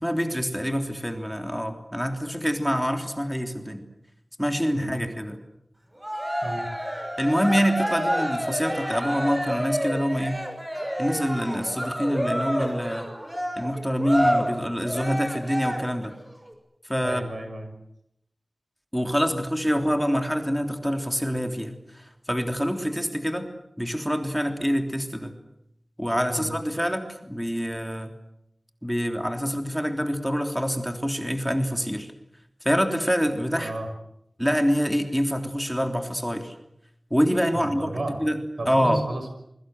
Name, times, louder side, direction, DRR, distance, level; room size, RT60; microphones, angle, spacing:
voice 1, 0.0-3.8 4.4-5.4 7.2-10.4 11.0-13.1 13.6-16.2 16.8-17.2 18.9-23.5 23.8-25.3 26.0-28.1 28.8-32.1 32.6-33.7 34.4-36.5 37.1-39.0, equal, ahead, 5 dB, 3.4 m, -26 dB
Cheering, 6.0-16.1, equal, 20° right, 6.1 m, -29 dB
voice 2, 17.0-17.7 26.3-26.5 33.5-33.9 37.5-38.2 38.6-39.3, right 2 dB, 75° right, 6 dB, 5.9 m, -32 dB
28.0 x 22.5 x 7.9 m, 0.80 s
wide cardioid pair, 65°, 0 cm